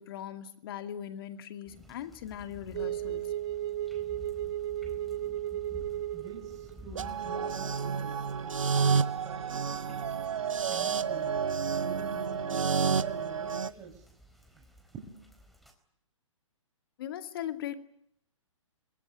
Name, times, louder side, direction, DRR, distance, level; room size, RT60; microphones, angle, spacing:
voice 1, 0.0-3.3 17.0-17.7, left 10 dB, 45° left, 2.3 m, -39 dB
sound 1, 1.7-15.7, left 1 dB, ahead, 4.3 m, -53 dB
sound 2, 2.7-13.7, right 9 dB, 55° right, 1.2 m, -35 dB
voice 2, 6.1-8.5 9.2-10.1 10.7-11.4 11.8-14.0 14.5-14.6 14.9-15.2, right 6 dB, 20° right, 6.2 m, -47 dB
sound 3, 7.0-13.7, right 5 dB, 80° right, 1.1 m, -31 dB
24.0 x 20.5 x 9.9 m
figure-of-eight pair, 130°, 17 cm